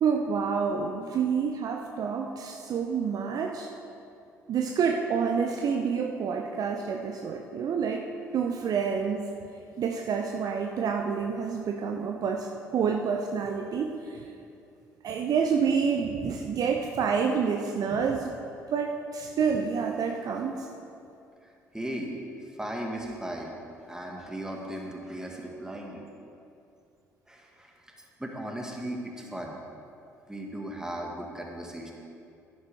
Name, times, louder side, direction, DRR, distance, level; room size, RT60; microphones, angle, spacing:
voice 1, 0.0-3.7 4.5-8.1 8.3-9.3 9.8-14.2 15.0-18.4 18.7-20.7, right 6 dB, 50° right, 3 dB, 0.7 m, -28 dB
voice 2, 21.4-23.5 23.9-26.0 27.3-29.6 30.3-31.9, right 1 dB, 10° right, 0 dB, 1.9 m, -37 dB
11.0 x 10.5 x 3.6 m, 2.5 s
figure-of-eight pair, 50°, 8 cm